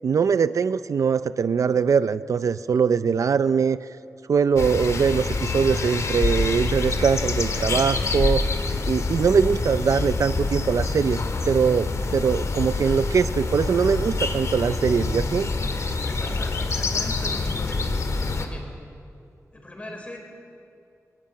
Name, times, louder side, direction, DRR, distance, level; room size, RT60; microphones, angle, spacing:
voice 1, 0.0-3.8 4.3-8.4 8.7-15.5, right 6 dB, 70° right, 14 dB, 0.5 m, -22 dB
sound 1, 4.6-18.5, left 3 dB, 65° left, 1.9 m, -26 dB
voice 2, 16.0-17.9 18.4-18.7 19.5-20.2, left 1 dB, 25° left, 2 dB, 4.6 m, -39 dB
22.5 x 19.5 x 8.7 m, 2.4 s
wide cardioid pair, 140°, 6 cm